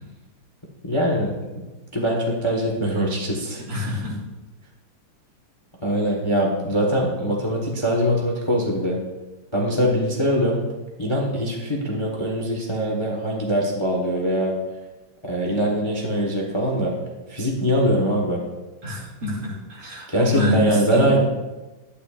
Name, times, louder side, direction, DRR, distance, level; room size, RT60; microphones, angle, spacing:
voice 1, 0.8-1.3 1.9-4.0 5.8-9.0 9.5-10.6 11.0-14.6 15.2-16.9 17.3-18.4 20.1-21.2, equal, 20° left, -1 dB, 0.8 m, -22 dB
voice 2, 3.7-4.1 18.8-21.2, left 1 dB, 80° right, -5 dB, 3.4 m, -26 dB
11.5 x 9.6 x 2.5 m, 1.1 s
omnidirectional pair, 2.4 m